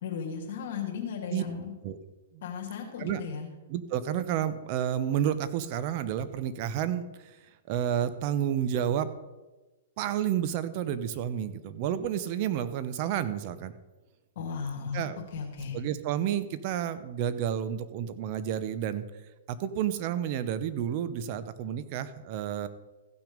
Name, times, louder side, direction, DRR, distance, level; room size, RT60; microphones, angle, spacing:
voice 1, 0.0-1.7 2.4-3.5 14.4-15.8, left 6 dB, 60° left, -1 dB, 2.4 m, -36 dB
voice 2, 3.7-7.4 7.7-9.1 10.0-13.7 14.9-15.2 15.7-19.0 19.5-22.7, right 10 dB, 45° right, 12 dB, 0.9 m, -30 dB
15.5 x 6.2 x 5.2 m, 1.1 s
hypercardioid pair, 130°, 0 cm